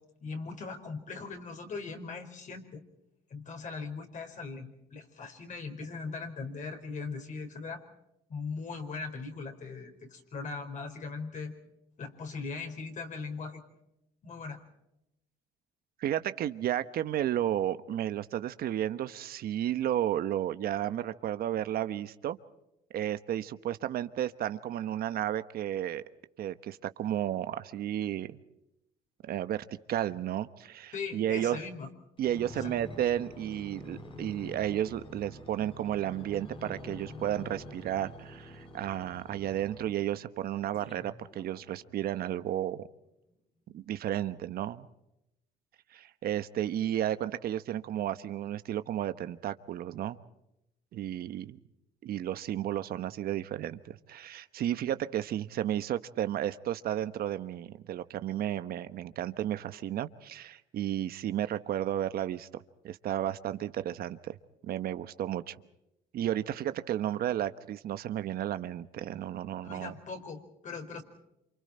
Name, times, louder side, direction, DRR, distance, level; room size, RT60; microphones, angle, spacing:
voice 1, 0.2-2.8 3.3-7.8 8.3-11.5 12.0-13.6 14.2-14.6 30.9-31.9 32.6-32.7 69.6-71.0, left 4 dB, 45° left, 4 dB, 4.7 m, -39 dB
voice 2, 16.0-22.4 22.9-26.0 26.4-28.4 29.2-31.6 32.2-42.9 43.7-44.9 45.9-50.2 50.9-51.6 52.0-64.4 64.6-65.6 66.1-69.9, right 11 dB, 65° right, 12 dB, 1.1 m, -33 dB
sound 1, 32.2-40.1 40.7-42.0 42.6-42.7, left 1 dB, 30° left, 3.0 m, -47 dB
28.5 x 27.0 x 4.4 m, 0.86 s
cardioid pair, 110°, 17 cm